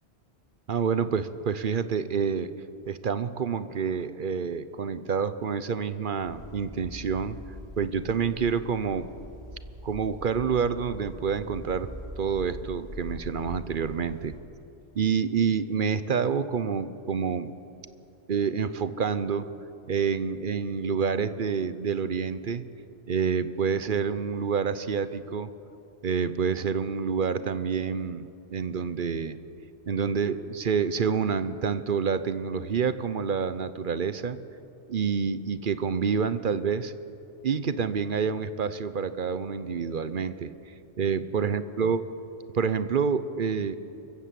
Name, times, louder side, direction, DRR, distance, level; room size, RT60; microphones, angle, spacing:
voice 1, 0.7-2.5 2.9-7.4 7.8-9.1 9.8-11.9 12.2-14.4 14.9-17.5 18.3-19.5 19.9-22.6 23.1-25.5 26.0-28.2 28.5-29.4 29.9-34.4 34.9-36.9 37.4-40.5 41.0-42.0 42.5-43.8, right 6 dB, 50° right, 13 dB, 0.9 m, -28 dB
sound 1, 6.2-14.4, left 1 dB, 35° right, 4.5 m, -43 dB
24.5 x 15.0 x 7.6 m, 2.7 s
omnidirectional pair, 1.2 m